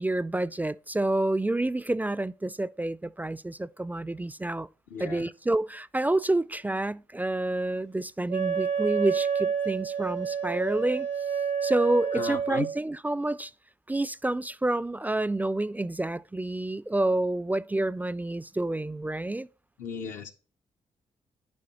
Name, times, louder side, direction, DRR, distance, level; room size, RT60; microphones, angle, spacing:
voice 1, 0.0-4.7 5.0-11.1 11.6-13.5 13.9-19.5, right 2 dB, 10° right, 0.3 m, -28 dB
voice 2, 4.9-5.3 12.1-12.7 19.8-20.3, left 6 dB, 80° left, 0.7 m, -36 dB
Wind instrument woodwind instrument, 8.3-12.8, right 7 dB, 65° right, 0.7 m, -29 dB
10.5 x 5.3 x 2.9 m
supercardioid pair, 50°, 13 cm